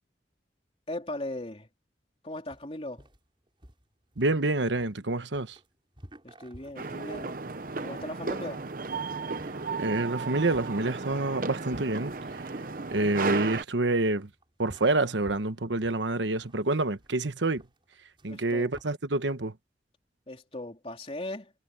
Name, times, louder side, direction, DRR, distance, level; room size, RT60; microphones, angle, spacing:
voice 1, 0.9-1.7 2.2-3.0 6.2-7.4 7.8-8.6 18.3-18.7 20.3-21.5, left 1 dB, 30° left, 3.7 m, -38 dB
sound 1, 2.5-18.8, equal, 30° right, 6.2 m, -54 dB
voice 2, 4.2-5.6 9.8-12.2 12.9-14.3 14.6-17.6 18.2-19.5, right 2 dB, 85° right, 1.2 m, -27 dB
sound 2, 6.8-13.6, right 4 dB, 50° right, 0.9 m, -34 dB
head